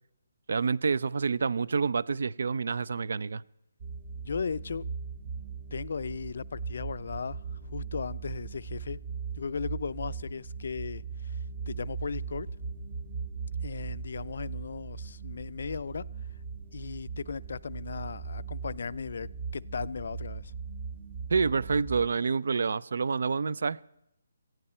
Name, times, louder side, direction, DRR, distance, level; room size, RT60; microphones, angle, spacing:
voice 1, 0.5-3.4 21.3-23.8, right 5 dB, 60° right, 0.5 m, -28 dB
sound 1, 3.8-22.1, right 5 dB, 30° right, 0.8 m, -39 dB
voice 2, 4.2-4.9 5.7-7.4 7.7-9.0 9.4-11.4 11.7-12.5 13.6-16.1 16.7-20.5, left 5 dB, 50° left, 0.4 m, -36 dB
18.5 x 15.0 x 4.3 m
hypercardioid pair, 175°, 0 cm